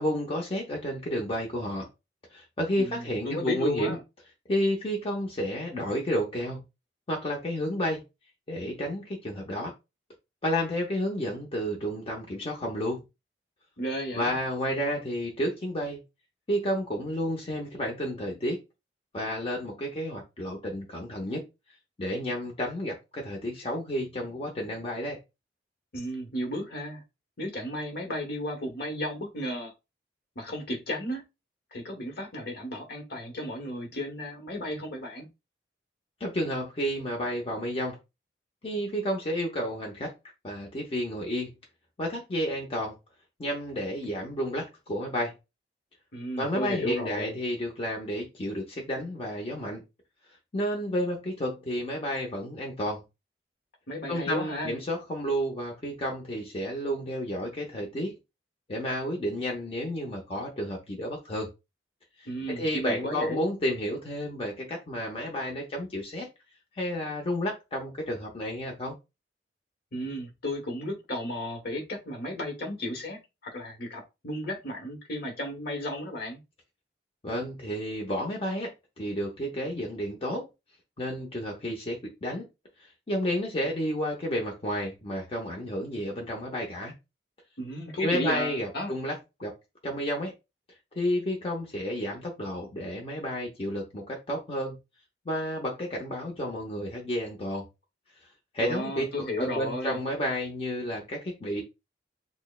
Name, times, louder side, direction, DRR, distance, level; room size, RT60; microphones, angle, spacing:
voice 1, 0.0-1.9 2.3-4.0 4.5-6.6 7.1-8.0 8.5-9.7 10.4-13.0 14.1-16.0 16.5-18.6 19.1-21.4 22.0-25.2 36.2-38.0 38.6-40.1 40.4-41.5 42.0-43.0 43.4-45.3 46.4-49.8 50.5-53.0 54.1-58.1 58.7-61.5 62.2-62.3 62.6-66.3 66.8-68.9 77.2-78.7 79.0-80.5 81.0-82.5 82.8-86.9 88.0-89.5 89.8-90.3 90.9-94.8 95.3-97.7 98.5-99.1 99.4-101.6, equal, 30° left, 0.7 m, -31 dB
voice 2, 2.8-4.0 13.8-14.4 25.9-27.0 27.4-29.7 30.3-31.2 31.7-35.3 46.1-47.4 53.9-54.7 62.2-63.4 69.9-76.4 87.6-88.9 98.6-100.0, equal, 60° left, 1.2 m, -34 dB
6.1 x 2.1 x 2.3 m
head